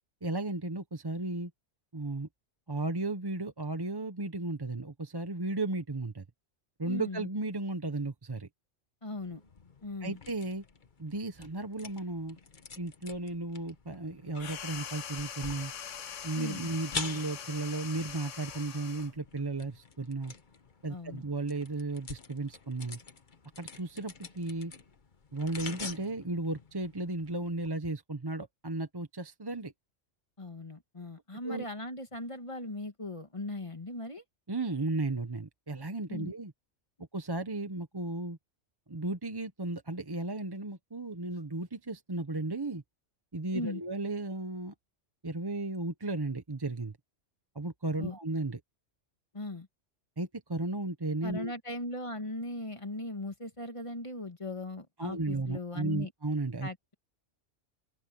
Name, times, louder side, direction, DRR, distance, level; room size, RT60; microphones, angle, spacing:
voice 1, 0.2-1.5 1.9-2.3 2.7-6.2 6.8-8.5 10.0-10.6 11.0-12.4 12.8-15.7 16.2-20.3 20.8-23.0 23.6-24.7 25.3-29.7 31.4-31.7 34.5-36.5 37.1-38.4 38.9-42.8 43.3-44.7 45.2-47.0 47.5-48.6 50.2-51.5 55.0-56.7, right 2 dB, 20° right, 0.9 m, -34 dB
voice 2, 6.8-7.3 9.0-9.4 9.8-10.2 16.3-16.7 20.9-21.2 30.4-34.2 36.1-36.3 43.5-43.8 48.0-48.2 49.3-49.7 51.2-56.1 56.6-56.9, left 2 dB, 25° left, 1.6 m, -39 dB
sound 1, 9.2-27.7, left 4 dB, 40° left, 1.3 m, -47 dB
sound 2, 14.4-19.2, left 8 dB, 85° left, 1.4 m, -42 dB
open air
omnidirectional pair, 1.2 m